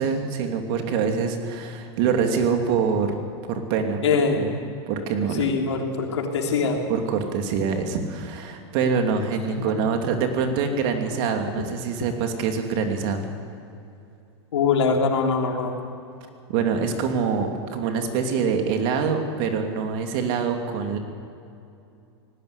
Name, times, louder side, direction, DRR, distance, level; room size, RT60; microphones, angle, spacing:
voice 1, 0.0-3.1 3.5-4.0 4.4-4.5 4.9-5.5 6.9-13.3 16.5-21.0, right 6 dB, 55° right, 4 dB, 2.8 m, -25 dB
voice 2, 4.0-4.5 5.4-6.8 14.5-15.7, left 5 dB, 85° left, 1 dB, 3.5 m, -22 dB
19.0 x 17.0 x 8.2 m, 2.6 s
supercardioid pair, 130°, 14 cm